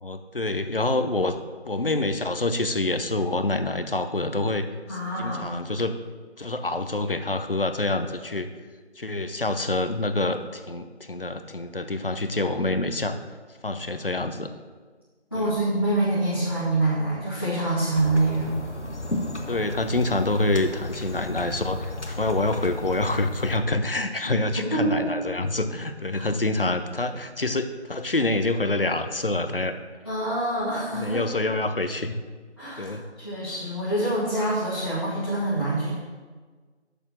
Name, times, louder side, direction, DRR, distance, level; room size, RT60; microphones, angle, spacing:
voice 1, 0.0-1.4 1.6-4.7 5.2-6.0 6.4-8.5 9.0-13.2 13.6-14.5 15.3-15.5 18.7-18.8 19.5-29.7 30.9-32.2 32.8-33.0, left 2 dB, 55° left, 8 dB, 0.7 m, -26 dB
voice 2, 4.9-5.6 15.3-18.6 24.2-25.0 26.1-26.2 30.0-31.2 32.6-35.9, right 2 dB, 20° left, -12 dB, 1.5 m, -26 dB
sound 1, 17.9-23.6, left 2 dB, 80° left, 1.3 m, -35 dB
6.8 x 6.3 x 6.3 m, 1.4 s
figure-of-eight pair, 170°, 34 cm